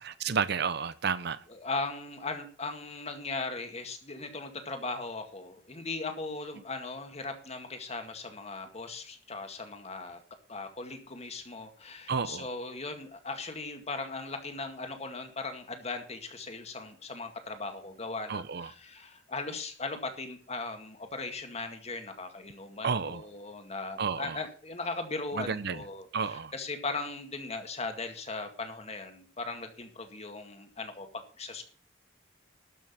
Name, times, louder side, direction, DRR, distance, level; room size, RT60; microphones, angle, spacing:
voice 1, 0.0-1.4 12.1-12.5 18.3-18.7 22.8-23.2 24.0-24.4 25.3-25.8 26.1-26.5, right 6 dB, 60° right, 0.7 m, -31 dB
voice 2, 1.5-10.2 10.5-31.1 31.4-31.6, left 3 dB, 35° left, 2.0 m, -38 dB
13.0 x 6.2 x 7.2 m
head